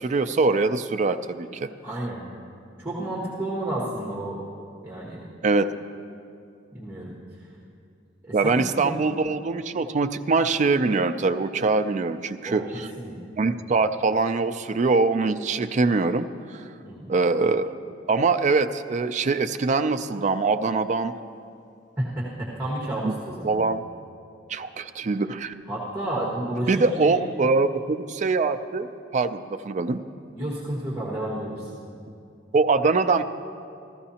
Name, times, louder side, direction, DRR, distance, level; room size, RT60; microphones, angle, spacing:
voice 1, 0.0-1.7 5.4-5.7 8.3-12.9 13.4-16.7 17.1-17.7 18.1-21.1 23.0-23.1 23.4-23.8 24.5-25.5 26.7-30.0 32.5-33.2, right 3 dB, 40° right, 10 dB, 0.4 m, -23 dB
voice 2, 1.8-2.3 2.8-4.4 4.8-5.2 6.7-7.1 8.2-8.9 12.4-13.6 16.8-17.1 22.0-23.7 25.7-27.1 30.3-31.7, right 1 dB, 10° right, -5 dB, 1.4 m, -31 dB
15.0 x 14.5 x 2.8 m, 2.5 s
head